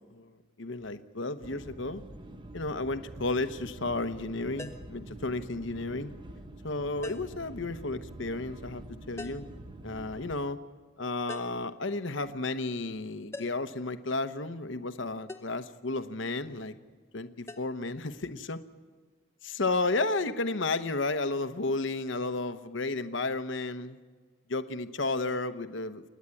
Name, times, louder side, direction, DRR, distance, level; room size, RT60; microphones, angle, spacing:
voice 1, 0.1-2.0 2.5-6.1 6.6-9.5 9.8-10.6 11.0-16.7 17.1-18.6 19.4-24.0 24.5-26.1, left 3 dB, 60° left, 11 dB, 0.9 m, -33 dB
sound 1, 1.4-10.4, right 1 dB, 25° right, 1.0 m, -46 dB
sound 2, 4.6-5.0 7.0-7.4 9.2-9.5 11.3-11.7 13.3-13.7 15.3-15.6 17.5-17.6, left 2 dB, 15° left, 0.8 m, -43 dB
28.5 x 10.5 x 9.7 m, 1.5 s
head